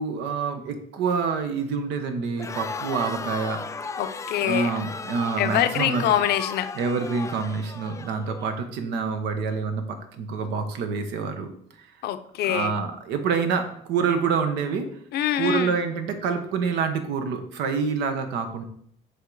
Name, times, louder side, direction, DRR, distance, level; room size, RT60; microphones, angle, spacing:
voice 1, 0.0-3.9 4.4-6.1 6.7-11.5 12.4-14.9 15.4-18.6, right 5 dB, 90° right, 7 dB, 0.9 m, -27 dB
Crowd, 2.3-8.5, left 4 dB, 20° left, 0.3 m, -36 dB
voice 2, 4.0-4.7 5.4-6.7 12.0-12.7 15.1-15.8, left 12 dB, 70° left, 10 dB, 0.6 m, -24 dB
7.7 x 3.5 x 4.0 m, 0.68 s
cardioid pair, 110°, 17 cm